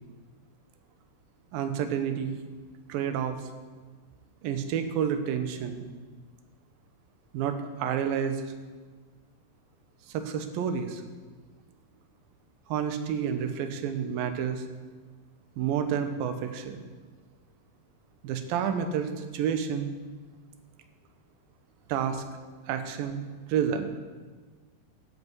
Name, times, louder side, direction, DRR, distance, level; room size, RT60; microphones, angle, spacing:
voice 1, 1.5-2.4 2.9-3.4 4.4-5.9 7.3-8.4 10.1-11.0 12.7-14.7 15.6-16.8 18.2-19.9 21.9-22.2 22.7-23.2 23.5-23.8, right 8 dB, 75° right, 8 dB, 2.7 m, -29 dB
16.0 x 11.0 x 4.7 m, 1.4 s
omnidirectional pair, 4.4 m